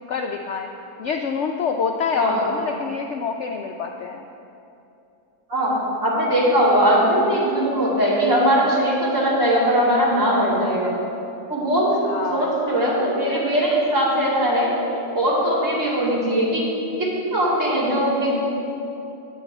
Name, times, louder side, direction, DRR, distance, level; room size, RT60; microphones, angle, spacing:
voice 1, 0.1-0.7 1.0-4.3 12.0-12.6, left 5 dB, 85° left, 3 dB, 0.6 m, -26 dB
voice 2, 6.0-10.9 11.5-11.9 12.3-14.7 14.9-16.6 17.0-18.3, equal, 45° right, -7 dB, 3.1 m, -20 dB
9.2 x 6.5 x 8.6 m, 2.8 s
omnidirectional pair, 1.8 m